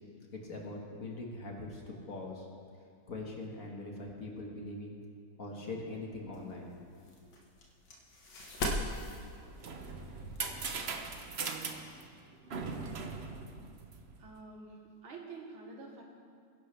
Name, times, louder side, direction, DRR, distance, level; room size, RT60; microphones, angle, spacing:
voice 1, 0.3-2.5 3.1-5.0 5.4-6.8, left 2 dB, 45° left, -1 dB, 1.9 m, -42 dB
sound 1, 6.3-11.3, left 1 dB, 70° left, 2.2 m, -40 dB
sound 2, 9.3-14.3, right 4 dB, 55° right, 0.7 m, -40 dB
voice 2, 14.2-16.0, right 4 dB, 80° right, 0 dB, 2.4 m, -48 dB
21.0 x 11.0 x 3.4 m, 2.2 s
omnidirectional pair, 2.2 m